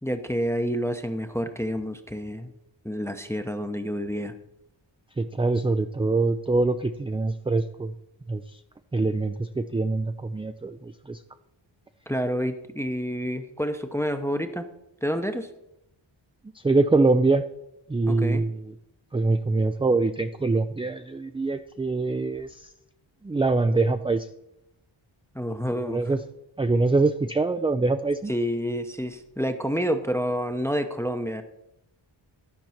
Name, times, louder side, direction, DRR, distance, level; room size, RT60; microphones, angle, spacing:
voice 1, 0.0-2.5 2.8-4.3 12.1-14.7 15.0-15.5 18.1-18.4 25.3-26.0 28.3-31.4, equal, 5° left, 7 dB, 0.7 m, -28 dB
voice 2, 5.2-7.9 8.3-8.6 8.9-11.2 16.5-17.5 17.9-18.7 19.1-22.7 23.2-24.3 25.8-26.2 26.6-28.3, right 3 dB, 15° right, 9 dB, 0.3 m, -24 dB
12.0 x 4.5 x 5.8 m, 0.85 s
cardioid pair, 55°, 49 cm